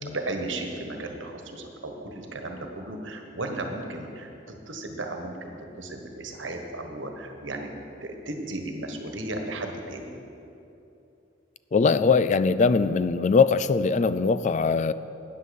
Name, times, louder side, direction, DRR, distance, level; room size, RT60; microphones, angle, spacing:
voice 1, 0.0-7.7 8.0-10.1, right 2 dB, 90° right, 4 dB, 1.4 m, -35 dB
voice 2, 11.7-14.9, left 4 dB, 40° left, 14 dB, 0.3 m, -21 dB
13.0 x 9.3 x 5.3 m, 2.8 s
head